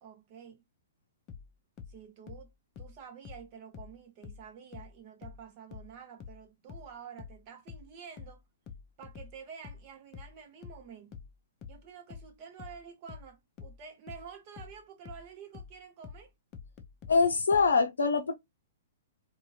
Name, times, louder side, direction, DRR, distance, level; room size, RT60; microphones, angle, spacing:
voice 1, 0.0-0.6 1.9-2.5 2.8-8.4 9.0-11.2 11.7-16.3, right 7 dB, 40° right, 0.7 m, -49 dB
sound 1, 1.3-4.5 4.7-17.8, left 6 dB, 30° left, 0.5 m, -47 dB
voice 2, 17.1-18.3, left 4 dB, 85° left, 0.5 m, -24 dB
2.6 x 2.3 x 3.1 m
hypercardioid pair, 125°, 0 cm